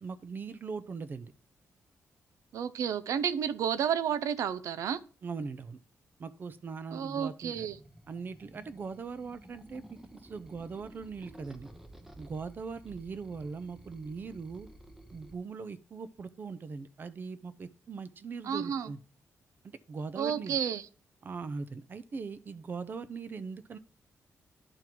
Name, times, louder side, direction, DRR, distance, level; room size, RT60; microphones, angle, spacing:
voice 1, 0.0-1.3 5.2-5.8 6.2-7.7 8.1-11.7 12.2-14.7 15.1-19.0 19.9-20.6 21.2-23.8, right 5 dB, 40° right, 0.6 m, -40 dB
voice 2, 2.5-5.0 6.9-7.8 18.4-18.9 20.2-20.9, right 8 dB, 90° right, 0.6 m, -31 dB
sound 1, 7.4-15.3, right 1 dB, 5° right, 0.8 m, -53 dB
10.5 x 3.7 x 4.6 m
wide cardioid pair, 155°, 5 cm